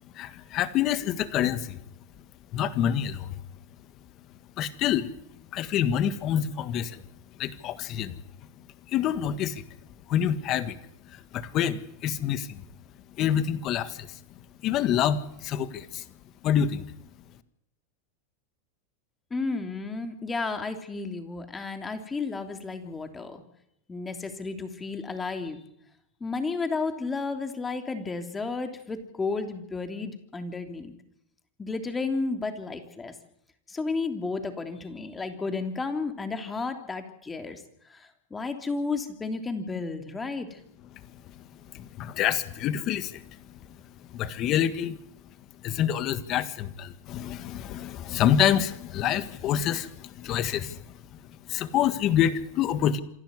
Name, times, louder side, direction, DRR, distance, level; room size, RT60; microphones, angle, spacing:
voice 1, 0.1-1.8 2.5-3.4 4.6-7.0 7.4-8.2 8.6-9.7 10.1-12.6 13.2-14.2 14.6-16.1 16.4-16.9 40.9-45.0 45.6-53.0, left 10 dB, 40° left, 13 dB, 1.7 m, -27 dB
voice 2, 19.3-23.4 23.9-25.6 26.2-30.9 31.6-33.1 33.7-37.6 37.9-40.6, left 3 dB, 15° left, 7 dB, 3.2 m, -32 dB
27.0 x 12.0 x 9.8 m, 0.75 s
supercardioid pair, 125°, 0 cm